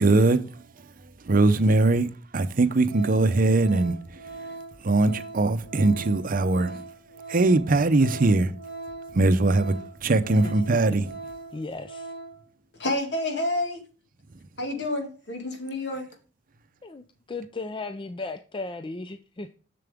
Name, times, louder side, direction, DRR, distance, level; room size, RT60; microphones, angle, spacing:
voice 1, 0.0-4.5 4.8-6.9 7.3-8.5 9.1-9.8 10.0-11.1, right 2 dB, 50° right, 0.6 m, -22 dB
Organ, 2.4-2.6 2.9-12.5 12.8-12.9, right 3 dB, 80° left, 2.2 m, -41 dB
voice 2, 11.5-12.1 16.8-19.6, left 3 dB, 25° left, 0.5 m, -36 dB
voice 3, 12.7-13.8 14.6-16.1, left 1 dB, 65° left, 2.1 m, -29 dB
7.2 x 6.8 x 3.5 m
head